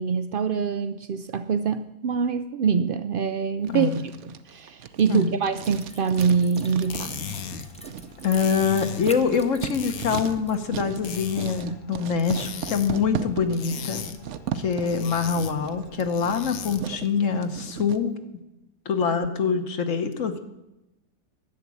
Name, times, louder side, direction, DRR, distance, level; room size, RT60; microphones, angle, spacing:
voice 1, 0.0-3.9 4.5-7.2, right 6 dB, 85° right, 11 dB, 0.4 m, -24 dB
Writing, 3.6-18.0, right 8 dB, 60° right, 0.9 m, -37 dB
voice 2, 3.7-4.0 5.1-5.4 8.2-14.1 14.5-18.2 18.8-20.4, left 6 dB, 60° left, 8 dB, 1.3 m, -25 dB
sound 1, 5.6-10.6 10.8-10.9, left 1 dB, 5° left, 0.6 m, -45 dB
sound 2, 6.7-17.0, left 7 dB, 80° left, 1.3 m, -39 dB
11.0 x 7.2 x 9.8 m, 0.94 s
omnidirectional pair, 1.5 m